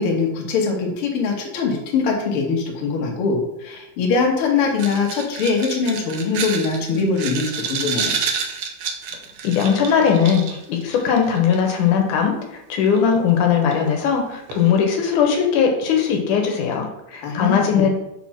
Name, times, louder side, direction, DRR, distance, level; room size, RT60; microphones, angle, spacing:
voice 1, 0.0-8.2 17.2-17.9, left 4 dB, 55° left, 0 dB, 1.9 m, -22 dB
sound 1, 4.8-11.7 13.0-13.1 13.6-13.9 14.5-14.7, right 6 dB, 90° right, 1.2 m, -29 dB
voice 2, 9.4-12.4 12.7-17.9, left 7 dB, 85° left, 3 dB, 2.5 m, -19 dB
5.3 x 4.3 x 6.0 m, 0.87 s
omnidirectional pair, 3.5 m